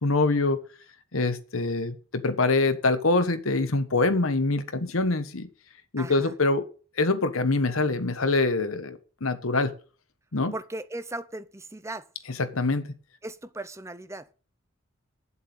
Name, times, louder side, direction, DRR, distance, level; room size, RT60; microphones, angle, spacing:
voice 1, 0.0-0.6 1.1-5.5 5.9-6.6 7.0-9.7 10.3-10.5 12.3-12.9, left 3 dB, 90° left, 1.3 m, -24 dB
voice 2, 6.0-6.3 10.5-12.1 13.2-14.3, right 2 dB, 15° right, 0.7 m, -37 dB
8.9 x 7.8 x 8.0 m
head